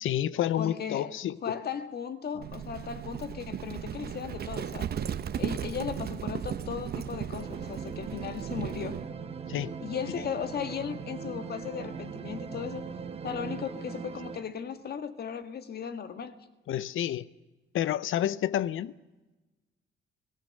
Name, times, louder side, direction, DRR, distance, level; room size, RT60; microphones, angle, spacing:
voice 1, 0.0-1.6 9.5-9.7 16.7-17.3 17.7-18.9, left 11 dB, 75° left, 0.7 m, -29 dB
voice 2, 0.6-1.2 1.4-4.9 5.4-9.0 9.8-12.8 13.2-16.4, left 7 dB, 50° left, 1.6 m, -36 dB
sound 1, 2.3-13.7, right 12 dB, 80° right, 0.7 m, -45 dB
Livestock farm animals working animals, 2.4-9.1, right 8 dB, 50° right, 0.9 m, -36 dB
sound 2, 7.4-14.4, right 4 dB, 30° right, 1.4 m, -41 dB
29.5 x 18.0 x 6.5 m
cardioid pair, 150°, 21 cm